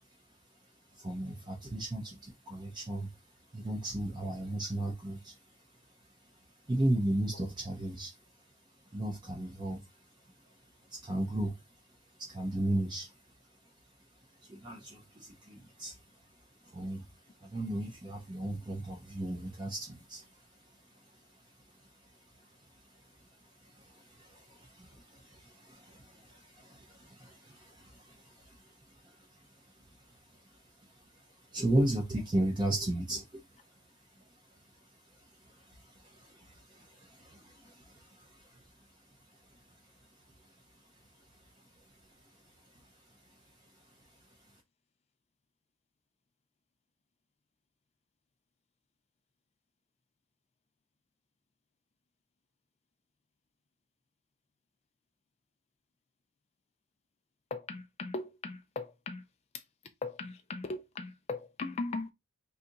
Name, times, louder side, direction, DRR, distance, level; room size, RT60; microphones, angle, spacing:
voice 1, 0.9-8.3 8.8-11.8 12.0-13.7 14.1-44.5, right 1 dB, 20° right, 0.5 m, -38 dB
voice 2, 57.5-59.2 59.5-59.6 60.0-62.1, left 3 dB, 30° left, 0.3 m, -38 dB
2.7 x 2.4 x 3.8 m
head